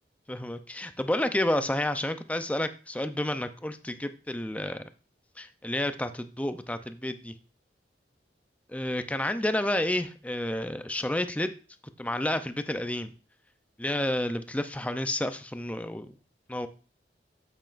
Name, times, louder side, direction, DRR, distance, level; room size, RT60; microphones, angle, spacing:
voice 1, 0.3-4.8 5.4-7.3 8.7-11.5 12.0-13.1 13.8-16.1 16.5-16.7, left 1 dB, 10° left, 9 dB, 0.5 m, -30 dB
8.9 x 8.0 x 2.5 m, 0.36 s
head